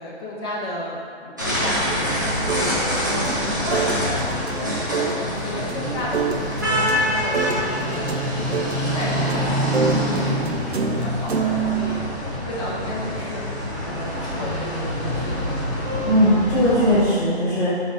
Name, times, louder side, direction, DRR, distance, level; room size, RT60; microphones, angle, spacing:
voice 1, 0.0-8.1 8.4-9.4 9.7-15.4 15.9-16.1, left 1 dB, 25° left, -7 dB, 1.1 m, -33 dB
sound 1, 1.4-17.0, equal, 20° right, 0.6 m, -25 dB
sound 2, 2.1-12.0, right 5 dB, 70° right, 0.7 m, -28 dB
voice 2, 9.8-10.2 16.0-17.8, equal, ahead, -23 dB, 1.2 m, -19 dB
6.6 x 4.4 x 5.2 m, 2.3 s
hypercardioid pair, 175°, 33 cm